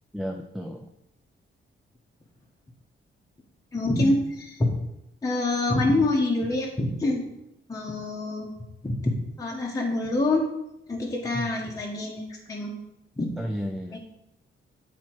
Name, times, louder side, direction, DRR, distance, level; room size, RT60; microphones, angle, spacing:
voice 1, 0.1-0.9 11.3-11.5 13.4-14.0, equal, ahead, 3 dB, 0.4 m, -32 dB
voice 2, 3.7-4.7 5.2-7.3 7.7-8.5 8.8-9.1 9.4-10.5 10.9-12.2 12.5-12.7 13.2-13.3 13.9-14.0, left 2 dB, 15° left, -3 dB, 0.9 m, -26 dB
8.2 x 4.1 x 4.5 m, 0.85 s
wide cardioid pair, 150°, 21 cm